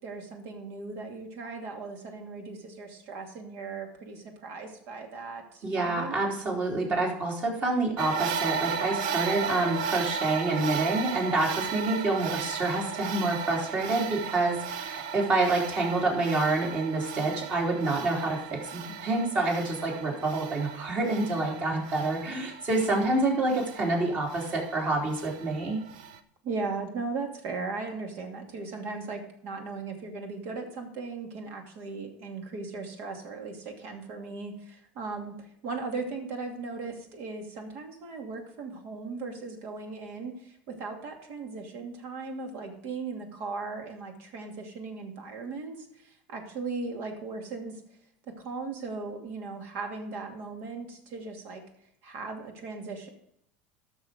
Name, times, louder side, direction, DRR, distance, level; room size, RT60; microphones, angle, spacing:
voice 1, 0.0-6.2 26.4-47.8 48.4-51.6 52.0-53.1, right 4 dB, 60° right, 3 dB, 2.5 m, -37 dB
voice 2, 5.6-25.8, right 2 dB, 35° right, -1 dB, 3.5 m, -27 dB
sound 1, 8.0-26.2, right 7 dB, 85° right, 0.9 m, -35 dB
12.5 x 6.5 x 5.1 m, 0.72 s
supercardioid pair, 135°, 5 cm